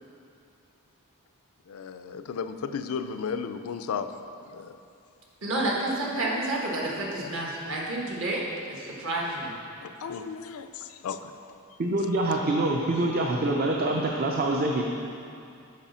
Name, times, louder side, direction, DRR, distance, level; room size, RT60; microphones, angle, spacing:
voice 1, 1.7-4.1 4.5-4.8 6.2-6.4 7.2-7.3 9.8-11.5, left 6 dB, 75° left, 9 dB, 0.4 m, -35 dB
voice 2, 5.4-9.5, right 2 dB, 60° right, -2 dB, 1.3 m, -30 dB
voice 3, 11.8-14.8, right 2 dB, 45° right, 0 dB, 0.5 m, -25 dB
7.3 x 4.9 x 5.6 m, 2.5 s
head